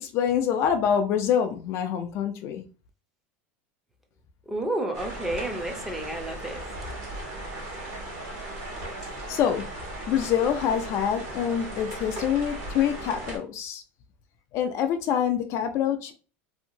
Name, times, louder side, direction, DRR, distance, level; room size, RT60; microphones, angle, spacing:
voice 1, 0.0-2.6 9.3-9.7 10.1-13.8 14.5-16.1, left 8 dB, 50° left, 0.4 m, -26 dB
voice 2, 4.5-6.6, right 1 dB, 5° right, 0.6 m, -31 dB
sound 1, 4.9-13.4, right 1 dB, 45° right, 1.3 m, -37 dB
2.7 x 2.5 x 2.7 m
supercardioid pair, 120°, 6 cm